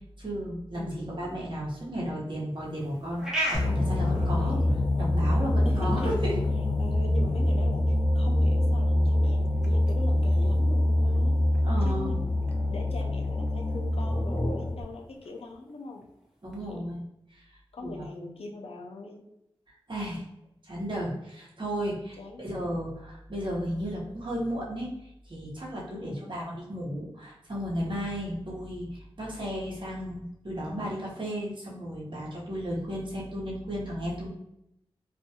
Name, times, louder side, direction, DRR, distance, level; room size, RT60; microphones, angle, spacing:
voice 1, 0.2-3.2 3.5-6.3 11.6-12.2 16.4-17.0 17.3-17.4 17.8-18.1 19.9-20.2 20.6-24.9 25.3-34.3, equal, 50° right, -6 dB, 1.0 m, -34 dB
voice 2, 0.7-1.4 4.4-4.7 5.7-6.1 6.8-7.9 8.1-11.4 11.8-12.2 12.7-16.0 16.7-16.8 17.7-19.2 22.2-22.4 25.9-26.3, left 3 dB, 75° left, 1 dB, 0.4 m, -41 dB
sound 1, 2.5-16.6, right 1 dB, 5° right, 0.7 m, -42 dB
sound 2, 3.5-14.8, left 1 dB, 40° left, 0.7 m, -25 dB
2.5 x 2.2 x 2.7 m, 0.82 s
cardioid pair, 40°, 10 cm